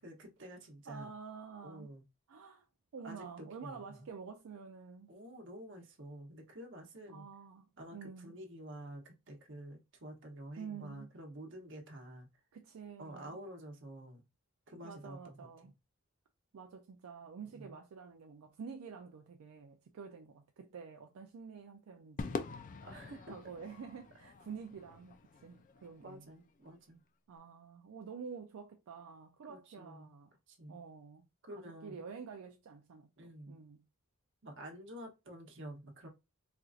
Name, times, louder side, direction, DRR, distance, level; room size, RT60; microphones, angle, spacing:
voice 1, 0.0-1.1 1.6-2.0 3.0-4.1 5.1-7.3 7.8-12.3 13.0-14.2 14.7-15.5 17.5-17.8 22.8-23.3 26.0-27.0 29.5-30.1 30.5-30.8 31.4-32.0 33.2-33.6 34.4-36.1, right 1 dB, 60° right, 0.9 m, -49 dB
voice 2, 0.9-1.9 2.3-2.6 2.9-5.1 7.1-8.4 10.6-11.1 12.5-13.4 14.8-15.7 16.5-22.7 23.3-26.3 27.3-30.3 30.7-31.3 31.6-33.9, right 6 dB, 85° right, 0.4 m, -49 dB
Crowd / Fireworks, 22.2-26.7, left 4 dB, 40° left, 0.4 m, -45 dB
4.3 x 2.5 x 2.4 m
head